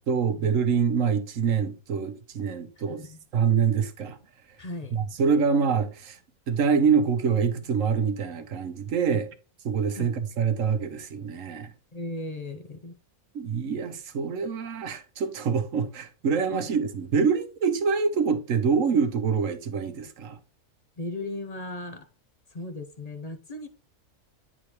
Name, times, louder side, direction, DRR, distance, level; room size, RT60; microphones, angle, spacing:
voice 1, 0.0-3.0 3.3-4.2 4.9-6.2 6.5-9.3 9.6-11.7 13.3-20.4, right 6 dB, 60° right, 1.2 m, -25 dB
voice 2, 2.9-3.2 4.6-5.0 9.1-9.2 10.0-10.1 11.9-13.0 16.5-16.6 21.0-22.1 22.5-23.7, left 2 dB, 45° left, 0.5 m, -36 dB
9.9 x 3.8 x 3.0 m
omnidirectional pair, 1.6 m